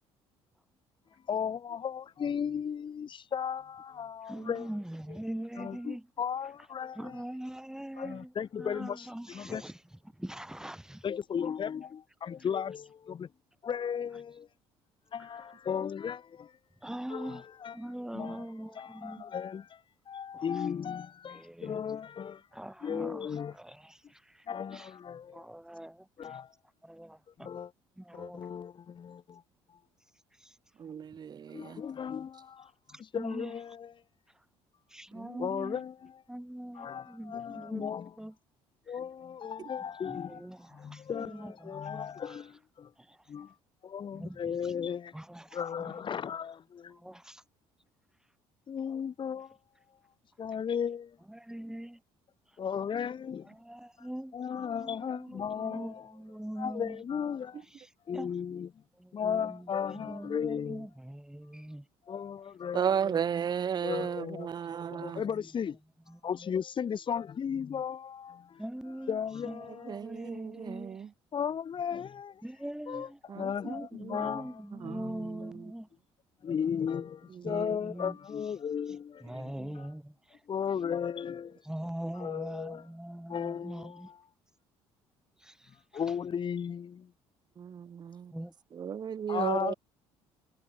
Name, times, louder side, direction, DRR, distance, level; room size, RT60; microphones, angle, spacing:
voice 1, 1.3-4.7 5.6-7.2 8.0-9.6 11.0-13.3 13.6-14.5 15.1-16.5 17.1-17.7 18.1-18.5 18.7-22.4 22.8-23.5 24.5-25.5 26.2-26.5 27.4-27.7 28.1-29.4 31.5-32.7 33.0-33.9 35.4-36.1 36.7-38.1 38.9-40.4 40.7-42.9 43.3-43.5 43.8-45.1 45.5-47.0 48.7-49.6 50.4-51.2 52.6-53.5 54.0-54.1 54.3-56.1 56.6-57.6 58.1-58.7 59.1-60.9 62.1-63.1 63.8-64.5 64.9-65.8 66.2-68.6 69.1-70.0 71.3-72.4 72.9-75.0 76.4-79.9 80.5-81.6 82.2-82.8 83.3-84.2 85.9-87.1 89.3-89.7, left 7 dB, 40° left, 0.8 m, -35 dB
voice 2, 4.3-6.1 6.9-11.1 15.2-15.5 16.8-17.4 17.7-19.2 20.3-20.6 21.3-21.8 22.5-24.5 24.7-24.9 25.3-26.4 26.8-27.5 28.0-28.5 30.4-30.6 32.9-33.6 34.9-35.8 36.3-38.3 38.9-39.0 40.1-42.4 43.0-43.5 44.1-44.7 45.1-46.2 46.9-47.4 51.3-52.0 53.4-54.4 54.8-57.0 57.7-58.3 59.0-61.9 63.1-65.4 66.1-66.2 68.6-71.1 72.4-73.2 73.6-73.9 74.2-75.9 77.4-78.2 79.2-80.4 81.6-84.1 85.4-86.0 88.3-88.5, right 1 dB, 5° right, 2.1 m, -43 dB
voice 3, 30.8-31.8 35.1-35.5 62.7-65.2 69.9-71.1 73.3-74.3 74.8-75.5 77.4-77.8 87.6-87.7 88.8-89.7, right 8 dB, 35° right, 0.4 m, -34 dB
supercardioid pair, 65°, 13 cm